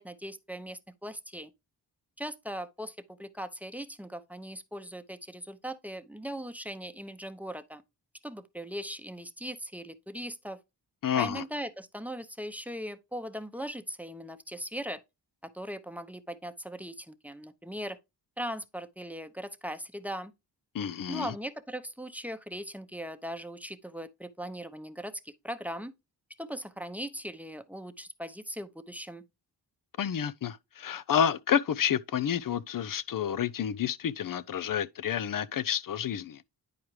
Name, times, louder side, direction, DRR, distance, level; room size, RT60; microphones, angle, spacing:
voice 1, 0.0-1.5 2.2-7.8 8.2-10.6 11.1-15.0 15.4-18.0 18.4-20.3 21.1-25.9 26.4-29.2, equal, 5° right, 0.8 m, -39 dB
voice 2, 11.0-11.4 20.7-21.3 30.0-36.4, left 9 dB, 45° left, 0.6 m, -29 dB
10.5 x 4.7 x 3.2 m
supercardioid pair, 40°, 46 cm